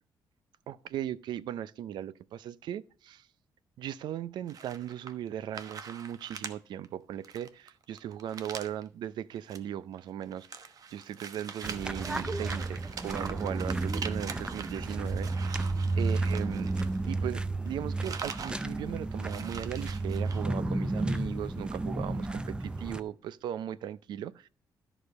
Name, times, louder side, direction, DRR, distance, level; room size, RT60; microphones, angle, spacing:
voice 1, 0.7-3.3 3.8-15.7 16.0-16.7 17.1-24.5, right 10 dB, 80° right, 0.5 m, -38 dB
sound 1, 4.5-5.3 5.5-6.5 6.8-6.9 7.2-8.8 9.4-9.6 9.9-17.4 17.7-18.6 18.9-19.0 19.2-20.4, right 6 dB, 55° right, 1.0 m, -43 dB
sound 2, 11.6-23.0, right 2 dB, 15° right, 0.6 m, -32 dB
13.5 x 5.0 x 5.3 m
cardioid pair, 125°, 7 cm